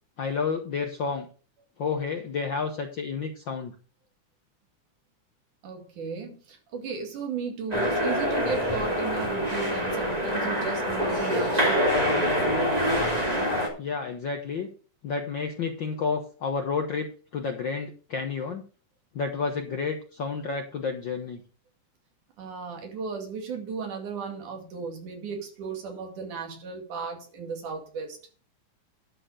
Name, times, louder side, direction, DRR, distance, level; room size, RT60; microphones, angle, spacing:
voice 1, 0.2-1.3 1.8-3.7 13.8-14.7 15.0-18.6 19.1-21.4, left 5 dB, 70° left, 4 dB, 1.1 m, -30 dB
voice 2, 5.6-12.8 22.4-28.2, right 5 dB, 90° right, 3 dB, 3.8 m, -35 dB
sound 1, 7.7-13.7, equal, 15° right, 2.3 m, -25 dB
11.5 x 6.7 x 5.0 m, 0.38 s
omnidirectional pair, 3.4 m